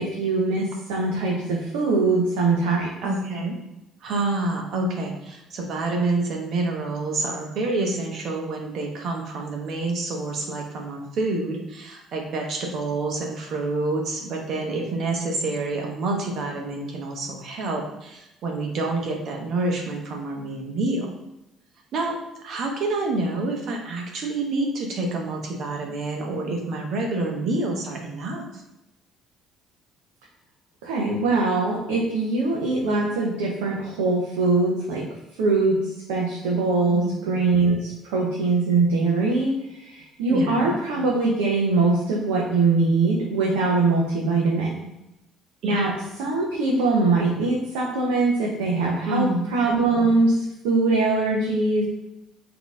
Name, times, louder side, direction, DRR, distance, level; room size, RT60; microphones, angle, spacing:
voice 1, 0.0-2.9 30.8-35.0 35.4-44.7 45.6-45.9 46.2-51.8, right 3 dB, 80° right, -3 dB, 0.8 m, -22 dB
voice 2, 3.0-3.6 4.0-21.1 21.9-28.4 36.9-37.3 40.3-40.7 45.6-45.9 49.1-49.5, right 2 dB, 60° right, 1 dB, 1.0 m, -28 dB
3.9 x 2.9 x 3.6 m, 0.91 s
hypercardioid pair, 55°, 0 cm